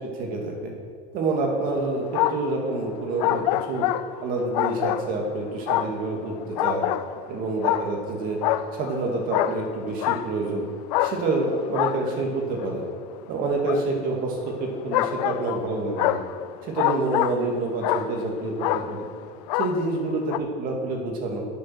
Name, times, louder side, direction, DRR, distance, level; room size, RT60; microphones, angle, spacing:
voice 1, 0.0-0.7 1.1-3.4 3.7-3.9 4.2-6.9 7.3-8.4 8.7-10.7 11.0-12.8 13.3-16.2 16.6-19.1 19.5-21.4, right 2 dB, 45° right, 1 dB, 2.2 m, -27 dB
sound 1, 1.8-2.6 3.2-5.3 5.7-7.2 7.6-8.1 8.4-10.5 10.9-12.8 13.6-13.8 14.9-17.6 17.8-18.3 18.6-19.1 19.5-20.0 20.3-20.4, left 13 dB, 75° left, 0.5 m, -26 dB
10.5 x 7.4 x 5.9 m, 2.2 s
supercardioid pair, 145°, 20 cm